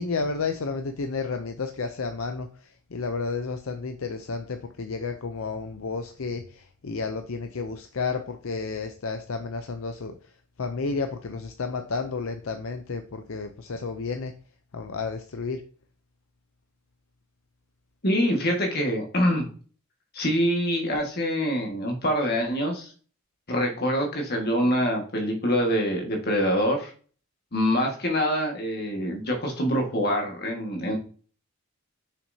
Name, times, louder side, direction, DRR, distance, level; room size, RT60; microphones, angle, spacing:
voice 1, 0.0-10.2 10.6-14.3 14.7-15.6, left 4 dB, 70° left, 6 dB, 0.6 m, -31 dB
voice 2, 18.0-19.5 20.1-22.9 23.5-26.9 27.5-31.0, equal, 45° left, 2 dB, 1.7 m, -25 dB
6.7 x 5.9 x 2.8 m, 0.41 s
head